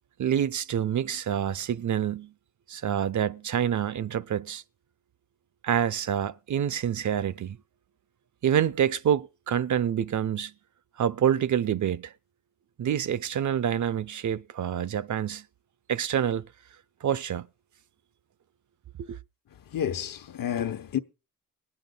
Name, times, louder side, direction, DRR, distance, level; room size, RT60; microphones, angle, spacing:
voice 1, 0.2-2.3 2.7-4.6 5.6-7.6 8.4-10.5 11.0-12.1 12.8-15.4 15.9-16.5 17.0-17.5 19.0-19.2, right 9 dB, 60° right, 0.6 m, -27 dB
voice 2, 19.7-21.0, left 10 dB, 80° left, 1.0 m, -30 dB
22.0 x 9.0 x 3.9 m
cardioid pair, 80°, 33 cm